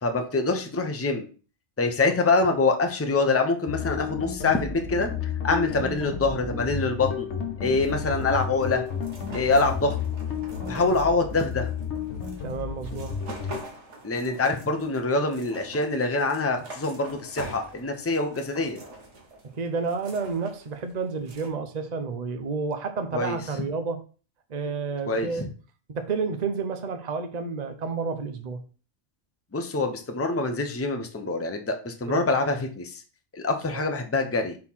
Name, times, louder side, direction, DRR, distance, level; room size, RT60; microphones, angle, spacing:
voice 1, 0.0-1.3 1.8-5.1 5.4-7.3 7.6-8.8 9.3-10.0 10.7-11.7 14.0-18.8 23.1-23.4 25.1-25.5 29.5-33.0 33.3-34.6, left 3 dB, 15° left, 0.7 m, -25 dB
sound 1, 3.7-13.6, left 7 dB, 70° left, 1.3 m, -32 dB
sound 2, 7.6-21.5, right 2 dB, 70° right, 1.9 m, -45 dB
voice 2, 12.4-13.2 19.6-24.0 24.5-25.5 25.9-28.6 32.1-32.3 33.7-33.8, right 4 dB, 40° right, 0.8 m, -30 dB
4.4 x 4.4 x 5.6 m
omnidirectional pair, 1.3 m